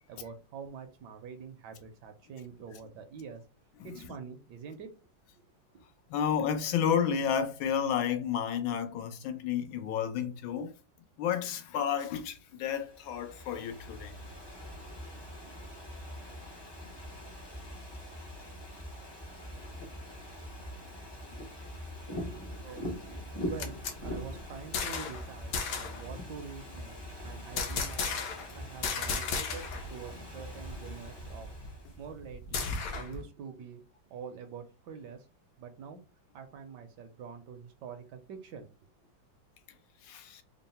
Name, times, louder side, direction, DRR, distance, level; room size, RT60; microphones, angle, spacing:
voice 1, 0.1-3.4 3.8-4.9 5.3-5.5 5.7-5.8 22.2-28.1 28.5-29.6 29.9-31.5 32.0-33.8 34.1-35.3 35.6-36.0 36.3-38.7, right 6 dB, 70° right, 1.1 m, -46 dB
voice 2, 6.1-10.7 11.2-14.1 40.0-40.4, left 8 dB, 85° left, 1.4 m, -31 dB
Ocean / Fireworks, 12.8-32.0, equal, 40° left, 0.3 m, -43 dB
sound 1, 23.3-25.2 25.5-26.0 27.6-28.5 28.8-29.9 30.2-30.3 30.6-33.2, left 5 dB, 65° left, 0.9 m, -35 dB
3.7 x 2.0 x 4.0 m
omnidirectional pair, 2.1 m